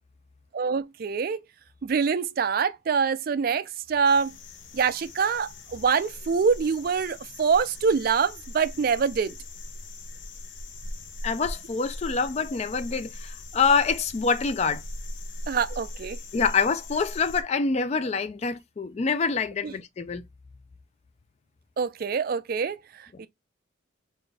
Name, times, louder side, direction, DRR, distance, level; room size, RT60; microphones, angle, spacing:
voice 1, 0.5-1.4 1.8-4.3 4.7-9.4 15.5-16.2 19.6-19.7 21.8-23.3, right 6 dB, 45° right, 0.3 m, -25 dB
sound 1, 4.0-17.4, left 1 dB, 60° left, 0.7 m, -40 dB
voice 2, 11.2-14.8 16.3-20.2, left 5 dB, 30° left, 0.3 m, -26 dB
3.9 x 2.5 x 3.3 m
head